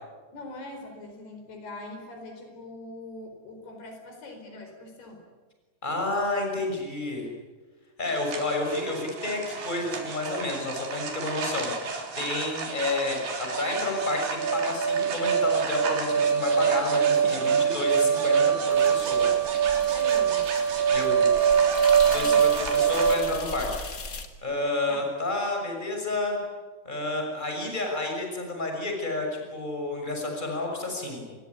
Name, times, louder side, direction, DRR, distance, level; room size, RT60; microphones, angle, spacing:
voice 1, 0.3-5.2 19.8-20.5 22.2-22.4 24.9-25.1, left 2 dB, 75° left, 4 dB, 6.4 m, -42 dB
voice 2, 5.8-7.3 8.0-19.3 20.9-21.3 22.0-23.7 24.4-26.4 26.8-31.2, left 2 dB, 10° left, 2 dB, 6.4 m, -30 dB
sound 1, 8.0-23.2, right 7 dB, 75° right, 5.4 m, -25 dB
sound 2, 18.7-24.3, left 3 dB, 35° left, 1.5 m, -40 dB
27.5 x 22.0 x 9.7 m, 1.3 s
omnidirectional pair, 4.7 m